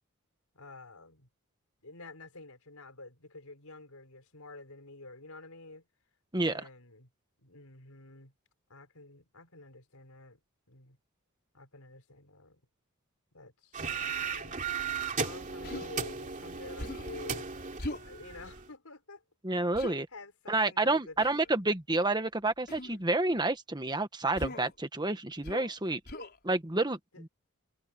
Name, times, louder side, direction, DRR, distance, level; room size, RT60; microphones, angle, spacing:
voice 1, 0.5-1.3 1.8-5.8 6.5-7.1 7.4-8.3 8.7-10.4 10.7-11.0 11.5-12.6 13.3-14.6 15.1-17.5 18.0-19.2 20.1-21.7 27.1-27.2, left 2 dB, 75° left, 4.7 m, -49 dB
voice 2, 6.3-6.6 19.4-20.1 20.5-26.0 26.4-27.3, right 2 dB, 20° right, 1.5 m, -29 dB
sound 1, 13.7-18.7, right 6 dB, 35° right, 3.0 m, -36 dB
Human voice, 15.6-15.9 16.8-17.2 17.8-18.1 19.7-20.0 21.2-21.5 22.7-23.0 24.4-24.7 25.4-25.7 26.1-26.4, left 1 dB, 45° left, 4.9 m, -39 dB
head